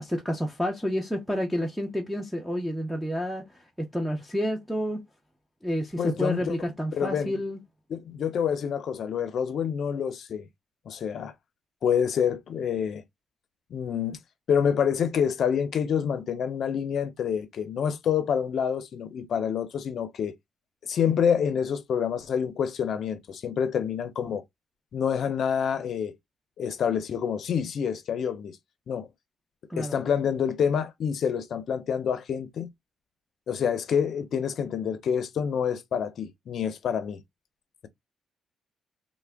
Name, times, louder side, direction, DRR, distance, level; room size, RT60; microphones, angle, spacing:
voice 1, 0.0-5.0 5.6-7.6 29.7-30.0, equal, ahead, 0.5 m, -30 dB
voice 2, 6.0-6.6 6.9-7.3 7.9-10.5 10.9-11.3 11.8-13.0 13.7-14.2 14.5-20.3 20.8-24.4 24.9-26.1 26.6-28.6 28.9-29.1 29.8-32.7 33.5-37.2, left 7 dB, 55° left, 0.5 m, -27 dB
3.4 x 2.1 x 3.3 m
cardioid pair, 140°, 0 cm